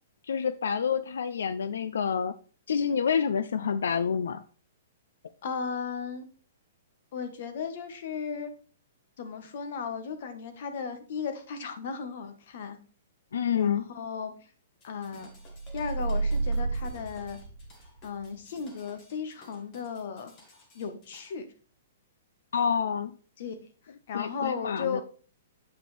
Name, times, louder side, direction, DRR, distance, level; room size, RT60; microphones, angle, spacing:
voice 1, 0.2-2.3 2.7-4.4 13.3-13.8 22.5-23.1 24.1-25.0, left 7 dB, 90° left, 14 dB, 0.4 m, -28 dB
voice 2, 5.4-6.3 7.1-8.5 9.2-12.8 13.5-14.3 14.8-15.3 15.7-17.4 18.0-20.3 20.7-21.5 23.4-23.6 24.1-25.0, left 6 dB, 50° left, 8 dB, 1.2 m, -35 dB
sound 1, 14.8-21.3, left 1 dB, 25° left, 1.5 m, -56 dB
sound 2, 15.4-18.1, right 3 dB, 65° right, 1.0 m, -31 dB
8.2 x 5.0 x 3.3 m, 0.40 s
hypercardioid pair, 170°, 0 cm